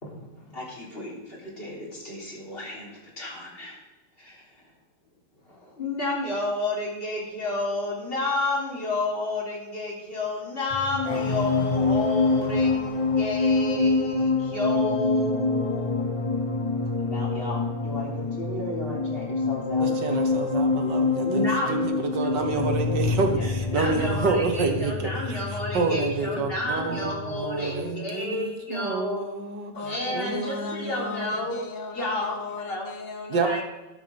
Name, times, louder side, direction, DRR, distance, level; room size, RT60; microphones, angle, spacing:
voice 1, 0.0-3.8 4.2-4.6 5.4-16.1 17.0-19.9 21.2-22.6 23.4-23.5 23.7-29.3 29.9-31.6 31.9-32.9 33.4-33.6, left 2 dB, 30° left, 3.7 m, -31 dB
sound 1, 10.7-27.4 27.6-27.9, left 3 dB, 45° left, 0.4 m, -26 dB
voice 2, 19.8-31.3 33.3-33.5, right 4 dB, 70° right, 2.0 m, -29 dB
voice 3, 29.7-33.6, left 3 dB, 75° left, 1.8 m, -37 dB
13.0 x 12.5 x 3.6 m
omnidirectional pair, 2.0 m